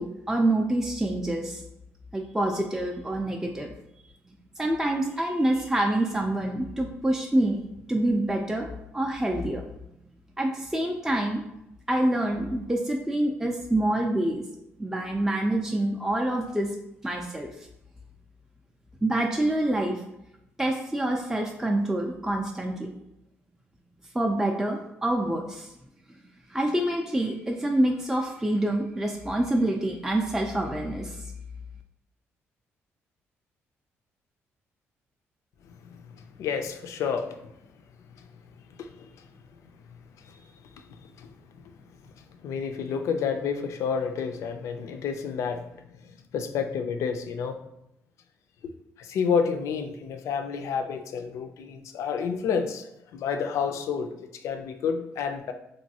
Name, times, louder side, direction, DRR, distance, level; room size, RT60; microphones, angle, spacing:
voice 1, 0.0-1.6 2.1-3.7 4.6-7.6 7.9-9.9 10.4-11.4 11.9-14.4 14.8-16.7 17.0-17.7 19.0-20.0 20.6-22.9 24.1-25.7 26.1-26.2 26.5-31.2, right 1 dB, 10° right, 0 dB, 0.4 m, -26 dB
voice 2, 35.7-37.5 38.2-38.3 38.8-39.6 40.2-40.4 40.8-41.3 42.1-47.6 48.6-48.7 49.0-55.5, left 6 dB, 75° left, 6 dB, 0.4 m, -30 dB
3.0 x 2.6 x 2.7 m, 0.84 s
cardioid pair, 80°, 5 cm